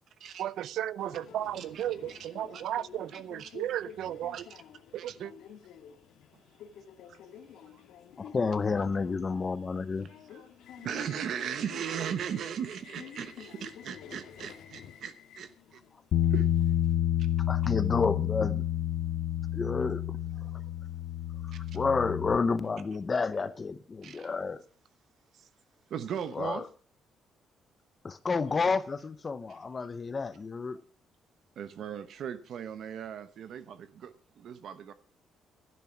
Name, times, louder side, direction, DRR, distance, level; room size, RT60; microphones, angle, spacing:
voice 1, 0.4-4.4 4.9-5.3, right 12 dB, 70° right, 0.5 m, -34 dB
Subway metro underground, 1.0-16.9, left 8 dB, 80° left, 1.8 m, -51 dB
voice 2, 1.5-2.6 3.1-3.5 4.3-4.4 4.9-5.1 7.1-7.2 7.6-7.8 10.3-10.4 10.8-15.8 16.3-16.5 24.0-24.3 25.9-26.6 31.6-34.9, right 8 dB, 55° right, 1.0 m, -38 dB
voice 3, 8.2-10.1 17.5-18.6 19.5-20.0 21.4-24.6 26.3-26.7 28.0-30.8, left 4 dB, 25° left, 0.6 m, -30 dB
Bass guitar, 16.1-22.4, left 11 dB, 65° left, 0.7 m, -29 dB
12.5 x 10.5 x 5.9 m
cardioid pair, 175°, 0 cm